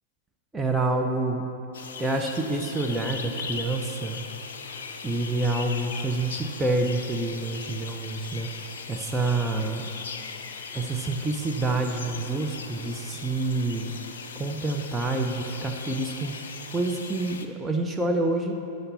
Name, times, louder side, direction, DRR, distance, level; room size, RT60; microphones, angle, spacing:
voice 1, 0.5-1.4 2.0-4.2 5.0-8.5 8.9-9.8 10.7-13.9 14.4-16.3 16.7-18.5, right 2 dB, 10° right, 2 dB, 0.7 m, -27 dB
sound 1, 1.7-17.5, left 5 dB, 60° left, 0.6 m, -39 dB
12.5 x 5.3 x 7.0 m, 2.7 s
figure-of-eight pair, 90°, 0 cm